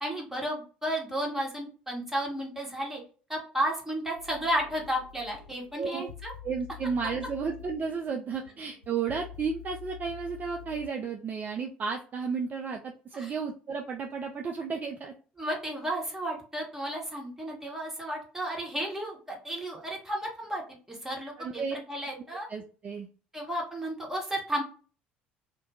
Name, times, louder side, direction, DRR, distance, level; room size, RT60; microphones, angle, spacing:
voice 1, 0.0-3.0 3.3-6.3 13.1-13.3 15.4-22.5 23.3-24.6, right 1 dB, 5° right, -2 dB, 1.0 m, -33 dB
sound 1, 4.2-10.9, left 10 dB, 85° right, 1.0 m, -47 dB
voice 2, 6.4-15.1 21.4-21.8 22.5-23.1, right 5 dB, 30° right, 2 dB, 0.3 m, -33 dB
2.3 x 2.1 x 2.7 m, 0.38 s
figure-of-eight pair, 60°, 5 cm